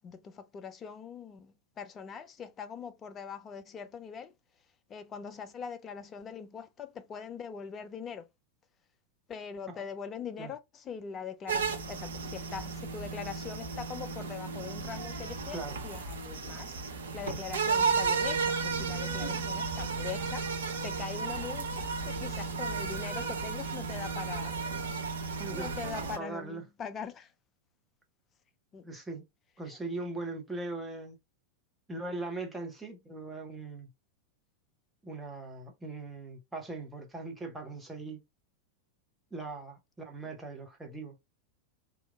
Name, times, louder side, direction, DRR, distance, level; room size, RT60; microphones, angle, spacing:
voice 1, 0.0-4.3 4.9-8.3 9.3-16.8 17.1-20.5 20.8-24.6 25.2-27.3 28.7-28.9, left 6 dB, 25° left, 0.4 m, -42 dB
sound 1, 11.5-26.2, right 5 dB, 65° right, 0.6 m, -33 dB
voice 2, 15.5-15.8 25.4-25.7 26.0-26.6 28.8-29.2 29.6-31.2 31.9-33.9 35.0-38.2 39.3-41.1, right 2 dB, 5° right, 0.7 m, -40 dB
2.9 x 2.3 x 2.3 m
figure-of-eight pair, 90°, 0 cm